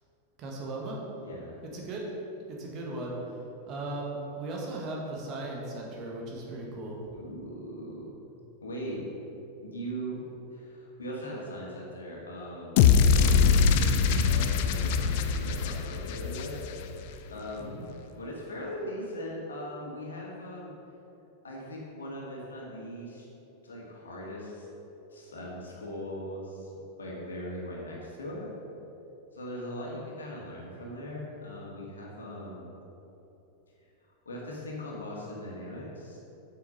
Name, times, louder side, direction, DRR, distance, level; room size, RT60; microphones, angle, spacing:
voice 1, 0.4-1.0 1.7-2.1 2.5-3.2 3.7-7.0 17.6-17.9, right 2 dB, 35° right, -2 dB, 1.7 m, -37 dB
voice 2, 1.2-1.6 7.1-8.1 8.6-9.1 9.6-13.7 14.0-16.6 17.3-17.8 18.2-20.7 21.4-23.3 23.6-24.7 25.1-26.7 27.0-28.5 29.3-32.7 34.3-36.2, equal, 70° left, -3 dB, 1.8 m, -39 dB
sound 1, 12.8-17.0, left 6 dB, 50° left, 0.5 m, -23 dB
8.4 x 5.9 x 5.2 m, 3.0 s
figure-of-eight pair, 90°, 0 cm